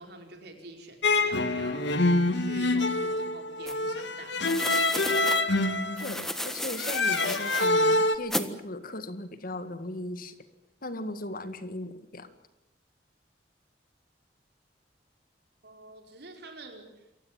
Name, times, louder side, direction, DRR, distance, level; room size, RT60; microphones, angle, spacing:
voice 1, 0.0-2.0 2.3-4.9 15.6-17.1, right 2 dB, 65° right, 4 dB, 5.0 m, -47 dB
sound 1, 1.0-8.2, left 2 dB, 85° left, 1.7 m, -26 dB
sound 2, 3.7-3.8 4.4-5.4 6.0-7.7 8.3-8.5, equal, ahead, 1.5 m, -33 dB
voice 2, 6.0-10.3 10.8-12.3, left 1 dB, 55° left, 11 dB, 2.0 m, -37 dB
27.5 x 16.0 x 9.0 m, 0.89 s
head